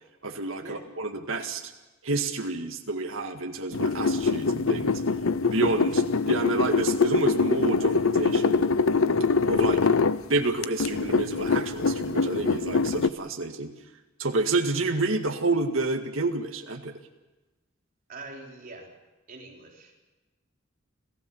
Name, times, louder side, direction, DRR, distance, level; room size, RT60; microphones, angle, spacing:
voice 1, 0.2-1.7 2.0-5.0 5.5-8.7 9.5-9.9 10.3-13.7 14.2-16.9, right 2 dB, 75° right, 4 dB, 2.0 m, -29 dB
sound 1, 3.7-10.2 10.6-13.1, left 4 dB, 90° left, 0.7 m, -24 dB
voice 2, 18.1-18.9 19.3-20.0, right 2 dB, 45° right, 0 dB, 4.2 m, -43 dB
28.0 x 15.5 x 7.3 m, 1.1 s
head